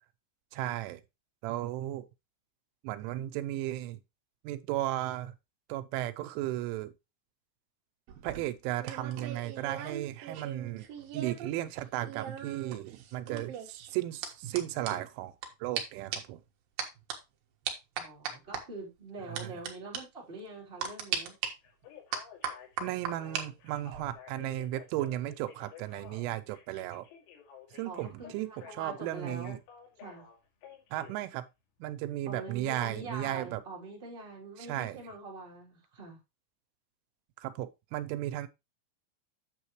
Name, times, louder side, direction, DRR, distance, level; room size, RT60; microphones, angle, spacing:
voice 1, 0.5-1.0 1.4-2.1 2.8-4.0 4.4-5.3 5.7-6.9 8.2-10.9 11.1-15.3 15.6-16.4 19.3-19.5 22.8-27.1 27.7-29.6 30.9-31.5 31.8-33.6 34.6-35.0 37.4-38.5, right 14 dB, 90° right, 3.1 m, -35 dB
sound 1, 8.1-11.5 11.8-15.5 15.8-15.9 16.1-16.4 16.8-17.2 17.7-18.6 19.4-19.7 19.9-20.0 20.8-21.5 22.1-23.4 23.8-24.1, right 8 dB, 65° right, 2.5 m, -38 dB
voice 2, 18.0-21.3 27.8-29.6 30.0-30.2 32.3-36.2, right 3 dB, 15° right, 2.8 m, -44 dB
Telephone, 21.6-31.2 32.8-32.9, left 7 dB, 85° left, 4.7 m, -52 dB
9.0 x 7.2 x 3.0 m
omnidirectional pair, 5.5 m